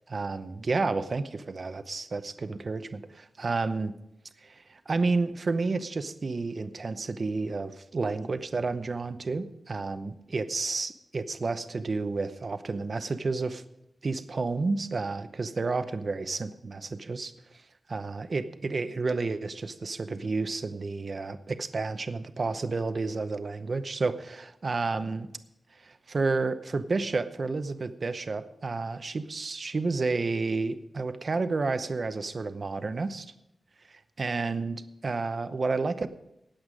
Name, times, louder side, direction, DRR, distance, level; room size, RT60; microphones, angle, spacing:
voice 1, 0.1-3.9 4.4-13.6 14.0-17.3 17.9-25.3 25.8-33.3 33.9-36.1, right 3 dB, 40° right, 11 dB, 0.8 m, -31 dB
19.0 x 7.9 x 5.1 m, 0.82 s
wide cardioid pair, 170°, 0 cm